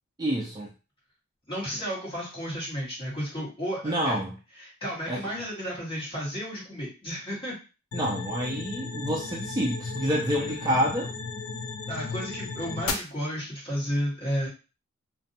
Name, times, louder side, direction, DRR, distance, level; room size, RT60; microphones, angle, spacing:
voice 1, 0.2-0.7 3.8-4.3 5.1-5.2 7.9-11.1, equal, 20° right, -2 dB, 0.3 m, -28 dB
voice 2, 1.5-4.2 4.6-7.6 10.3-10.8 11.9-14.5, equal, 25° left, -6 dB, 1.3 m, -33 dB
sound 1, 7.9-12.9, left 5 dB, 70° left, 0.4 m, -35 dB
2.5 x 2.1 x 2.6 m, 0.32 s
head